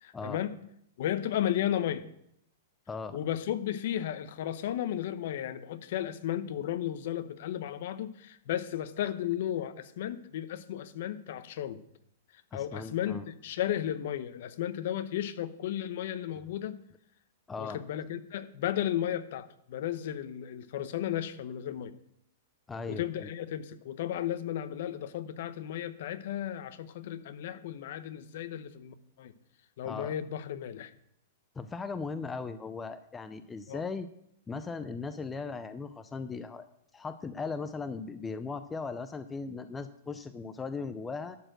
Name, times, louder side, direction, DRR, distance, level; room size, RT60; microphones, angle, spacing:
voice 1, 0.0-0.5 1.0-2.0 3.1-11.8 12.5-16.8 17.6-21.9 22.9-29.3 29.8-30.9 33.7-33.8, left 11 dB, 55° left, 13 dB, 0.8 m, -34 dB
voice 2, 2.9-3.2 12.5-13.3 17.5-17.8 22.7-23.3 29.8-30.1 31.6-34.1 34.5-36.7 36.9-41.4, left 4 dB, 10° left, 10 dB, 0.4 m, -38 dB
12.0 x 4.4 x 7.9 m, 0.74 s
hypercardioid pair, 160°, 0 cm